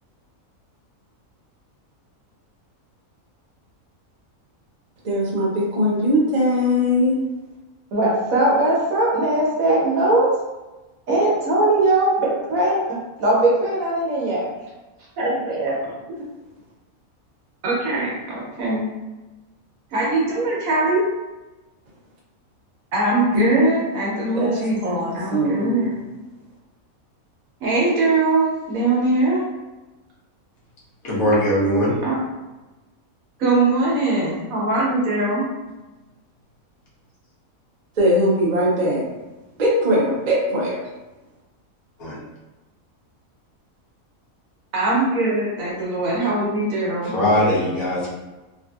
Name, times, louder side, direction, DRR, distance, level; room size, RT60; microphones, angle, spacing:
voice 1, 5.0-7.2 23.3-23.7 24.3-26.0 38.0-39.0 39.6-40.8, equal, 40° right, -5 dB, 0.7 m, -20 dB
voice 2, 7.9-10.3 11.1-14.4 15.2-15.7 17.6-18.8 19.9-21.0 22.9-25.9 27.6-29.4 32.0-32.1 33.4-35.4 44.7-47.1, right 2 dB, 75° right, -5 dB, 1.2 m, -21 dB
voice 3, 31.0-32.0 42.0-42.2 47.0-48.1, equal, 90° left, -7 dB, 1.5 m, -20 dB
3.4 x 2.5 x 2.3 m, 1.1 s
omnidirectional pair, 1.5 m